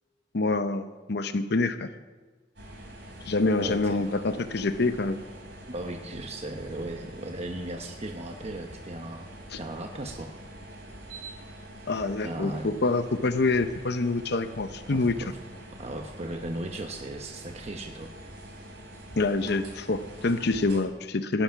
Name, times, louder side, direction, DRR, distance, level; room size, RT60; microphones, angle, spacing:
voice 1, 0.3-1.9 3.3-5.2 9.5-9.6 11.9-15.2 19.2-21.4, left 3 dB, 65° left, 10 dB, 0.8 m, -26 dB
sound 1, 2.6-20.8, right 1 dB, 70° right, 3.3 m, -45 dB
voice 2, 3.6-4.0 4.3-4.4 5.7-9.3 9.6-10.3 12.2-12.7 14.9-15.3 15.8-18.1, right 1 dB, 35° right, 3 dB, 1.0 m, -37 dB
18.0 x 10.5 x 5.8 m, 1.3 s
head